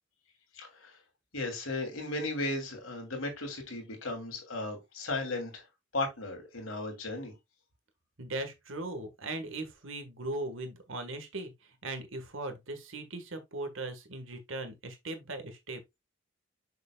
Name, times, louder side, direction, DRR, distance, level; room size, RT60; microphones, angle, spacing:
voice 1, 0.5-0.9 1.3-5.6 5.9-7.3, left 2 dB, 85° left, 3.0 m, -35 dB
voice 2, 8.2-15.8, right 2 dB, 70° right, 1.6 m, -39 dB
6.8 x 6.5 x 2.4 m
head